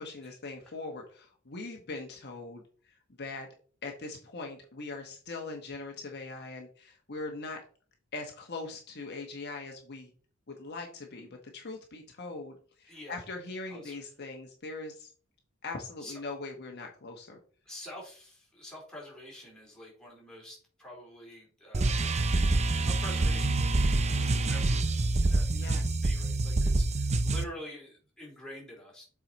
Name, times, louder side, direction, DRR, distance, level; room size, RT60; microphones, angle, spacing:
voice 1, 0.0-3.5 3.8-7.6 8.1-10.1 10.5-15.1 15.6-17.4 25.5-26.0, left 3 dB, 50° left, 2 dB, 1.2 m, -41 dB
voice 2, 12.9-13.2 13.7-14.0 16.0-16.2 17.6-29.0, equal, 5° left, -4 dB, 3.2 m, -47 dB
sound 1, 21.7-27.4, right 2 dB, 30° right, 0.6 m, -26 dB
7.5 x 4.8 x 4.0 m, 0.42 s
head